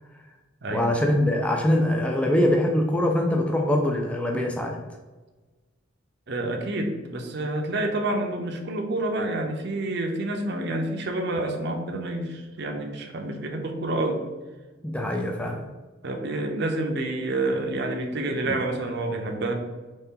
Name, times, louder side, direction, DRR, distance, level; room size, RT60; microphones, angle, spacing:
voice 1, 0.7-4.8 14.8-15.6 18.5-18.6, left 1 dB, 5° left, 1 dB, 0.3 m, -23 dB
voice 2, 6.3-14.2 16.0-19.5, right 2 dB, 55° right, 3 dB, 0.6 m, -28 dB
4.2 x 3.2 x 3.7 m, 1.2 s
head